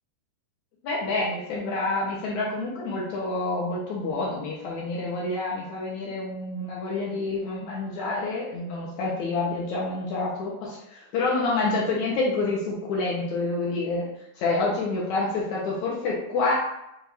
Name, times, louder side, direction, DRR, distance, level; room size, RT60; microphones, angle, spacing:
voice 1, 0.8-10.7 11.1-14.0 14.4-16.5, left 3 dB, 70° left, -4 dB, 1.9 m, -28 dB
6.4 x 2.5 x 3.4 m, 0.84 s
omnidirectional pair, 3.8 m